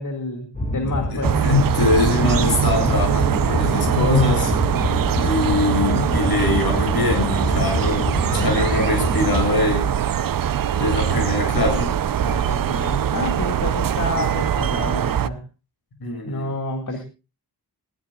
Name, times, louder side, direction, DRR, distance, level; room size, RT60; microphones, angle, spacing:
voice 1, 0.0-1.4 12.2-15.4 16.2-17.0, left 2 dB, 50° left, 3 dB, 2.1 m, -29 dB
sound 1, 0.5-9.5, left 1 dB, 20° left, 2.3 m, -26 dB
voice 2, 1.1-4.5 5.2-9.9 10.8-11.9 16.0-16.5, left 3 dB, 70° left, 3 dB, 7.6 m, -23 dB
sound 2, 1.2-15.3, right 9 dB, 60° right, 0.7 m, -22 dB
21.0 x 15.5 x 2.4 m, 0.30 s
wide cardioid pair, 120°, 38 cm